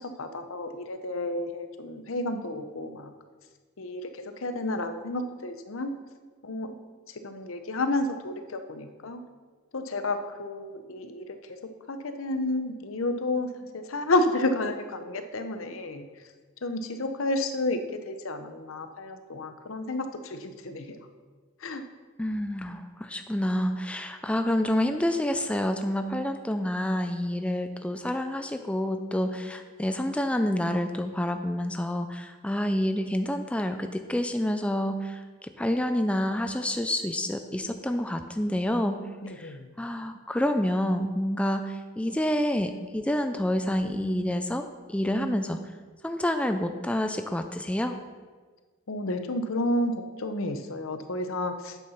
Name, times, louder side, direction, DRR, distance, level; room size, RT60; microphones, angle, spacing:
voice 1, 0.0-3.1 3.8-5.9 6.4-6.7 7.1-9.2 9.7-11.6 11.9-16.1 16.6-17.8 18.0-21.0 21.6-21.8 39.2-39.7 48.9-51.8, left 2 dB, 75° left, 8 dB, 0.8 m, -31 dB
voice 2, 22.2-39.0 39.3-45.6 46.0-48.0, left 1 dB, 5° left, 7 dB, 0.3 m, -28 dB
8.4 x 6.8 x 5.7 m, 1.4 s
head